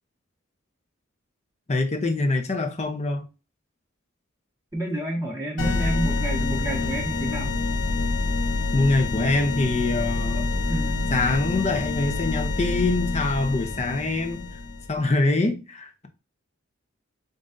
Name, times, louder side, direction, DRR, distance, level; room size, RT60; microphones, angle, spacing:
voice 1, 1.7-3.2 8.7-10.5 11.1-14.5 14.9-16.1, left 2 dB, 35° left, 0.7 m, -24 dB
voice 2, 4.7-7.6 10.7-11.1, right 1 dB, 15° right, 1.8 m, -29 dB
sound 1, 5.6-15.0, left 3 dB, 75° left, 0.7 m, -27 dB
7.5 x 2.6 x 2.6 m
head